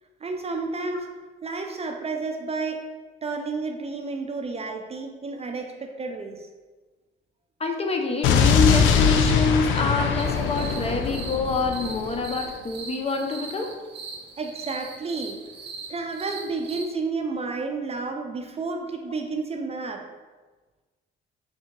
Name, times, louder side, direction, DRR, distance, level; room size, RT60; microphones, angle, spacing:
voice 1, 0.2-1.1 1.4-2.8 3.2-6.5 14.4-15.4 15.9-20.0, right 3 dB, 30° right, 4 dB, 0.5 m, -31 dB
voice 2, 7.6-13.7, left 3 dB, 30° left, 3 dB, 0.6 m, -26 dB
Explosion, 8.2-12.3, left 6 dB, 80° left, 0.4 m, -22 dB
sound 1, 10.2-16.8, right 4 dB, 65° right, 0.8 m, -40 dB
3.6 x 2.7 x 4.4 m, 1.3 s
cardioid pair, 90°, 20 cm